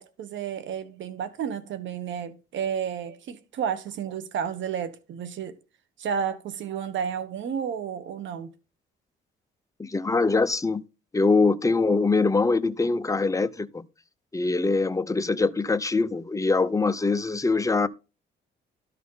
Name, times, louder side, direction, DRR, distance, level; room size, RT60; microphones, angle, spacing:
voice 1, 0.0-5.5 6.0-8.5, right 7 dB, 70° right, 1.3 m, -31 dB
voice 2, 9.8-10.8 11.1-13.8 14.3-17.9, left 3 dB, 15° left, 0.7 m, -23 dB
12.5 x 4.1 x 5.7 m
cardioid pair, 90°, 20 cm